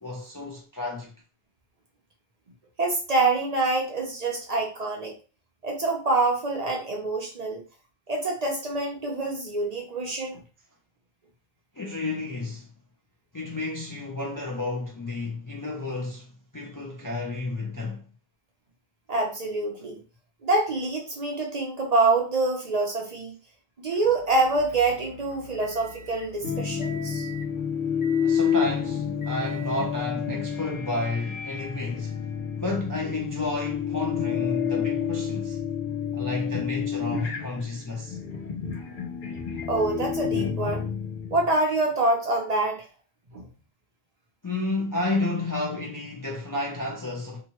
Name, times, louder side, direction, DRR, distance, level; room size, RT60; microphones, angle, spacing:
voice 1, 0.0-1.1 11.7-12.7 13.3-18.0 28.2-32.2 32.6-35.6 36.1-38.2 44.4-47.4, left 2 dB, 30° left, 0.4 m, -31 dB
voice 2, 2.8-5.1 5.6-7.6 8.1-10.4 19.1-20.0 20.4-23.3 23.8-27.3 39.7-40.8 41.3-42.9 43.3-43.5, right 2 dB, 50° right, 0.6 m, -26 dB
Motor vehicle (road) / Engine, 23.9-30.0, right 3 dB, 85° left, 1.1 m, -46 dB
sound 1, 26.4-41.6, left 7 dB, 60° left, 0.8 m, -29 dB
2.8 x 2.2 x 2.9 m
omnidirectional pair, 1.0 m